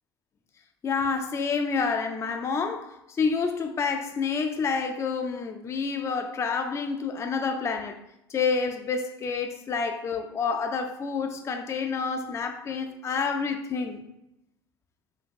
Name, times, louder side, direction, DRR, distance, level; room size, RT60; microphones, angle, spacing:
voice 1, 0.8-8.0 8.3-14.0, left 5 dB, 20° left, 0.4 m, -28 dB
5.4 x 2.3 x 3.6 m
figure-of-eight pair, 70°, 13 cm